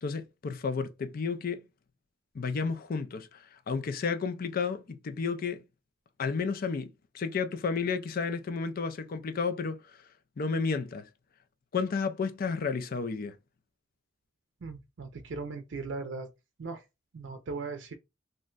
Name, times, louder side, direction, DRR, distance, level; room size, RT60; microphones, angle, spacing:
voice 1, 0.0-1.7 2.3-5.6 6.2-9.8 10.4-11.1 11.7-13.4, left 5 dB, 50° left, 0.4 m, -32 dB
voice 2, 14.6-16.3 16.6-16.8 17.1-17.9, right 4 dB, 70° right, 0.5 m, -38 dB
2.5 x 2.1 x 3.8 m
head